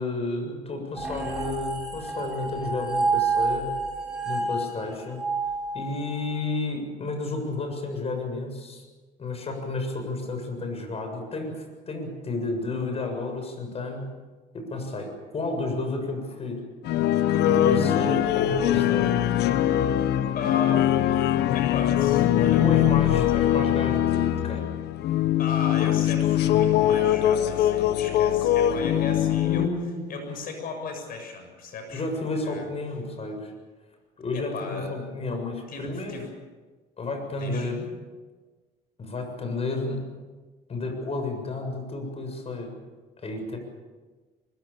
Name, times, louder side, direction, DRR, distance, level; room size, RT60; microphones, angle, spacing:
voice 1, 0.0-3.7 4.2-5.3 5.7-8.8 9.2-14.1 14.5-16.6 17.4-19.3 22.5-24.7 29.4-30.0 31.9-33.5 34.2-36.2 37.0-37.9 39.0-40.1 40.7-42.8 43.2-43.6, left 2 dB, 35° left, 4 dB, 7.2 m, -31 dB
sound 1, 0.9-6.4, right 3 dB, 5° right, 7.5 m, -29 dB
sound 2, 16.8-29.7, left 11 dB, 80° left, 1.2 m, -22 dB
voice 2, 20.3-20.9 21.5-23.4 25.4-29.7 30.1-32.0 32.4-32.7 34.3-35.0 35.7-36.3 37.3-37.7, left 4 dB, 60° left, 5 dB, 7.1 m, -36 dB
24.0 x 22.0 x 7.1 m, 1.3 s
cardioid pair, 110°, 17 cm